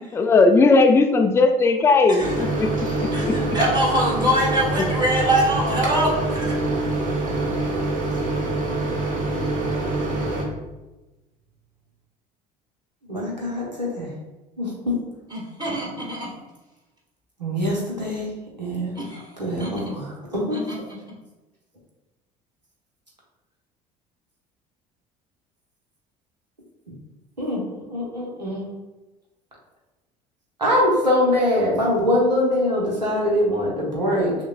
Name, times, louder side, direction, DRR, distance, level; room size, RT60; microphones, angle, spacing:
voice 1, 0.1-2.2 2.6-3.3, left 3 dB, 10° left, 5 dB, 0.3 m, -17 dB
voice 2, 2.1-2.5 3.1-6.6 15.3-16.3 18.9-19.3 19.6-19.7 20.5-20.8, equal, 20° right, -5 dB, 1.5 m, -23 dB
Microwave oven, 2.2-10.4, right 2 dB, 40° right, 1.1 m, -25 dB
voice 3, 13.0-14.1 14.6-15.0 17.4-18.3 18.6-18.9 19.4-20.6 27.4-28.6 30.6-34.3, left 1 dB, 85° right, -3 dB, 0.8 m, -23 dB
5.8 x 2.2 x 2.3 m, 1.1 s
figure-of-eight pair, 60°, 21 cm